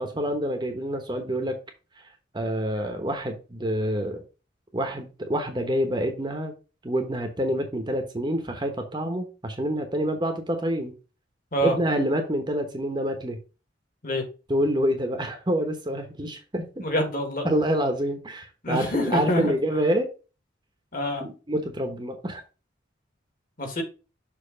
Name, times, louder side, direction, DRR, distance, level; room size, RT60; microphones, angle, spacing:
voice 1, 0.0-1.6 2.3-4.2 4.7-6.5 6.8-10.9 11.6-13.4 14.5-16.8 17.4-20.1 21.2-22.4, equal, 25° right, 0.9 m, -27 dB
voice 2, 16.8-17.5 18.6-19.6 20.9-21.3 23.6-23.8, equal, 45° left, 1.7 m, -26 dB
6.6 x 3.1 x 5.0 m
head